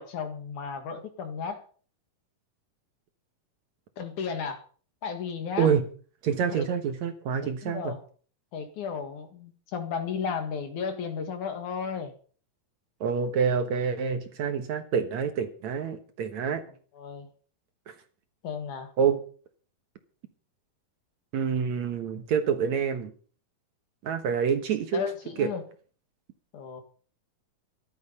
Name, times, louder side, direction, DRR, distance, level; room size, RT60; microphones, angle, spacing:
voice 1, 0.0-1.6 4.0-4.6 5.0-5.7 6.5-6.7 7.4-8.0 8.5-12.1 16.4-16.6 16.9-17.3 18.4-18.9 24.9-25.6 26.5-26.8, left 6 dB, 60° left, 7 dB, 3.0 m, -34 dB
voice 2, 6.2-7.9 13.0-16.6 17.9-18.0 19.0-19.2 21.3-23.1 24.0-25.0 25.4-25.5, right 7 dB, 60° right, 8 dB, 2.3 m, -27 dB
14.5 x 12.5 x 5.4 m, 0.42 s
omnidirectional pair, 4.0 m